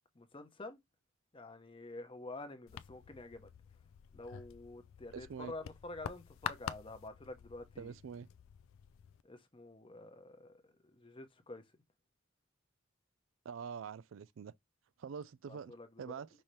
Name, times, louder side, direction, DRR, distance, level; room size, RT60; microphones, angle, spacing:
voice 1, 0.1-0.8 1.3-3.5 4.1-7.9 9.2-11.6 15.5-16.2, left 2 dB, 25° left, 0.8 m, -49 dB
sound 1, 2.7-9.2, left 8 dB, 80° left, 0.3 m, -47 dB
voice 2, 5.1-5.5 7.8-8.3 13.5-14.5 15.0-16.3, right 6 dB, 70° right, 0.4 m, -45 dB
5.4 x 2.8 x 3.1 m
head